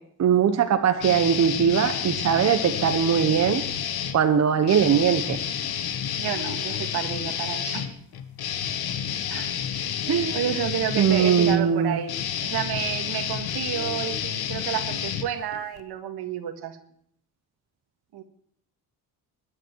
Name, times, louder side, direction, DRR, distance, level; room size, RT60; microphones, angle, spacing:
voice 1, 0.2-3.6 4.1-5.4 10.1-10.4 11.0-12.0, right 8 dB, 45° right, 7 dB, 1.1 m, -21 dB
sound 1, 1.0-4.2 4.6-15.8, left 9 dB, 75° left, 1.5 m, -30 dB
voice 2, 6.2-7.9 9.3-9.5 10.3-12.2 12.4-16.8 18.1-18.2, right 10 dB, 80° right, 7 dB, 1.9 m, -30 dB
20.5 x 9.9 x 4.7 m, 0.65 s
cardioid pair, 170°, 38 cm